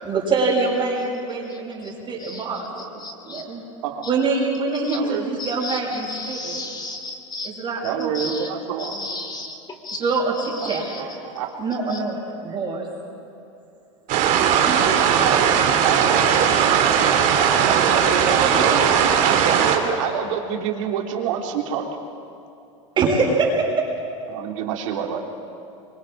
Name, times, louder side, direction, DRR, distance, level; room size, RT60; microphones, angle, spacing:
voice 1, 0.0-2.7 3.3-3.6 4.1-6.6 7.4-8.4 10.0-11.1 11.6-12.9 14.7-14.8 16.9-17.3 23.0-23.8, right 3 dB, 30° right, -4 dB, 6.1 m, -24 dB
voice 2, 1.5-1.9 2.2-2.4 3.0-3.4 4.8-5.0 5.4-7.5 8.1-8.5 8.8-9.5 9.8-11.0 11.9-12.0, left 2 dB, 25° left, 4 dB, 3.6 m, -34 dB
voice 3, 4.9-5.2 7.8-9.1 10.6-11.5 15.8-16.2 17.6-21.9 24.3-25.2, right 8 dB, 75° right, 1 dB, 3.4 m, -27 dB
sound 1, 14.1-19.8, right 8 dB, 50° right, 2.9 m, -18 dB
26.0 x 24.5 x 4.9 m, 2.7 s
supercardioid pair, 110°, 17 cm